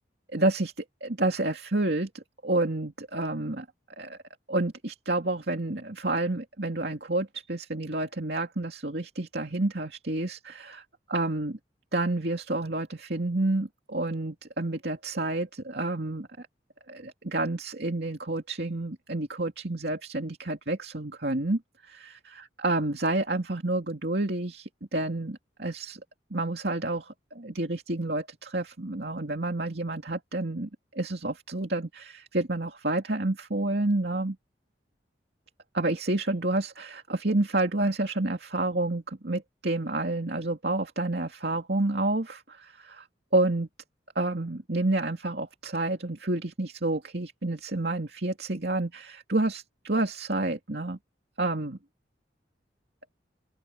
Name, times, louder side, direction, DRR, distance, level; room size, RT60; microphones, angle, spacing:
voice 1, 0.3-0.7 1.0-3.7 4.0-4.2 4.5-10.8 11.1-11.6 11.9-16.5 16.9-26.0 26.3-34.4 35.7-43.1 43.3-43.7 44.1-49.6 49.9-51.0 51.4-51.8, right 2 dB, 60° right, 2.7 m, -29 dB
open air
head